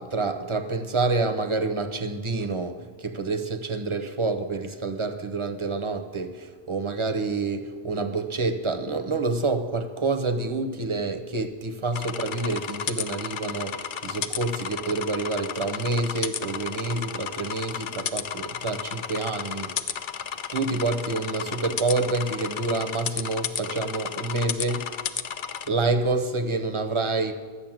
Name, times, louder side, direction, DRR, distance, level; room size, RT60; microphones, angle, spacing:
voice 1, 0.0-19.9 20.5-24.9 25.7-27.3, right 3 dB, 30° right, 0.9 m, -28 dB
sound 1, 11.9-25.7, left 8 dB, 55° left, 0.6 m, -33 dB
12.5 x 6.7 x 8.9 m
omnidirectional pair, 1.1 m